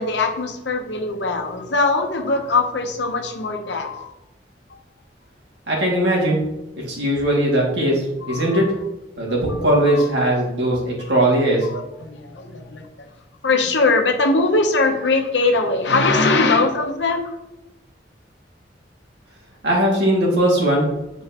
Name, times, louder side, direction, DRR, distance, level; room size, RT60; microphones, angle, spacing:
voice 1, 0.0-4.1 8.2-8.7 9.5-10.1 11.6-12.8 13.4-17.3, left 3 dB, 90° left, 5 dB, 0.9 m, -21 dB
voice 2, 5.7-6.4 6.9-8.7 9.2-11.7 19.6-20.9, right 1 dB, 80° right, -3 dB, 2.1 m, -19 dB
8.0 x 4.5 x 2.9 m, 0.93 s
head